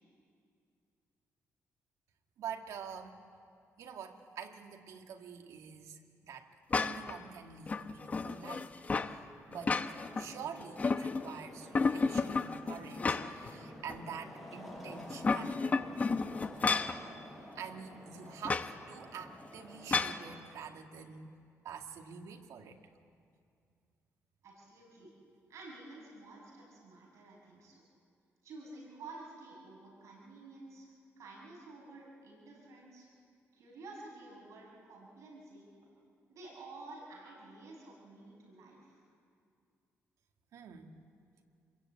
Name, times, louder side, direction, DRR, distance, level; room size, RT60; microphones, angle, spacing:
voice 1, 2.4-3.2 3.8-6.5 6.8-8.7 9.0-9.2 9.5-9.8 10.2-15.7 17.6-22.8 40.5-41.0, right 7 dB, 85° right, 3 dB, 2.1 m, -46 dB
sound 1, 6.7-7.2 7.7-9.1 9.5-10.3 10.6-11.4 11.7-13.5 13.9-14.0 15.0-17.0 18.4-18.7 19.9-20.2, left 4 dB, 30° left, 0.9 m, -32 dB
sound 2, 9.7-20.4, equal, ahead, 6.2 m, -51 dB
voice 2, 24.4-25.1 25.5-27.8 28.4-33.1 33.5-35.7 36.3-39.0, right 2 dB, 70° right, -2 dB, 6.8 m, -51 dB
27.5 x 22.0 x 8.8 m, 2.3 s
cardioid pair, 145°, 5 cm